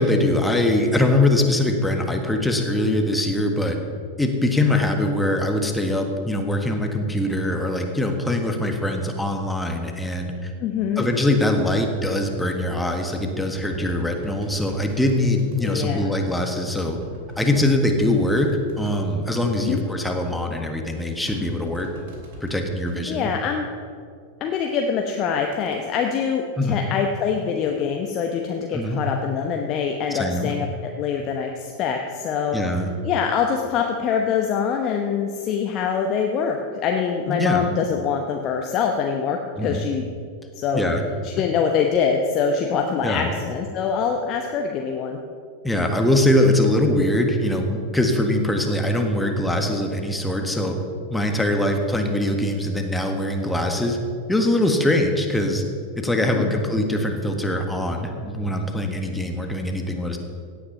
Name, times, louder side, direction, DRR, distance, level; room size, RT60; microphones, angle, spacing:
voice 1, 0.0-3.8 4.2-10.5 11.0-17.0 17.4-18.5 18.8-21.9 22.4-23.3 26.6-26.8 28.7-29.0 30.1-30.5 32.5-32.9 37.3-37.6 39.6-39.8 40.7-41.0 43.0-43.3 45.6-50.8 51.1-54.0 54.3-55.6 56.0-60.2, left 1 dB, 5° left, 3 dB, 1.6 m, -22 dB
voice 2, 10.6-11.1 15.6-16.1 19.6-19.8 23.1-23.7 24.4-30.7 31.0-32.6 33.0-40.1 40.5-40.8 41.2-45.2 56.3-56.7, left 6 dB, 35° left, 3 dB, 1.0 m, -24 dB
sound 1, 10.7-12.5 13.3-15.7 16.5-19.4 20.9-23.4 25.5-25.8, right 1 dB, 55° right, 2.7 m, -43 dB
16.5 x 8.8 x 5.5 m, 2.2 s
figure-of-eight pair, 90°, 0 cm